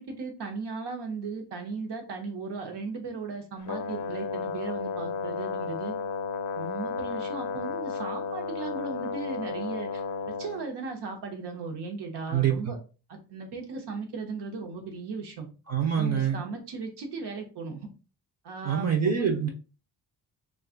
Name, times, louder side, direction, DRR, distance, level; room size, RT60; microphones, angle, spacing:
voice 1, 0.0-5.9 6.6-10.0 10.4-12.8 13.1-15.5 15.9-17.9 18.4-19.5, right 4 dB, 90° right, 4 dB, 0.9 m, -37 dB
Brass instrument, 3.6-10.6, left 5 dB, 50° left, 0.4 m, -33 dB
voice 2, 12.3-12.7 15.7-16.4 18.6-19.5, right 7 dB, 40° right, 4 dB, 0.5 m, -25 dB
2.4 x 2.4 x 3.6 m, 0.33 s
wide cardioid pair, 155°, 40 cm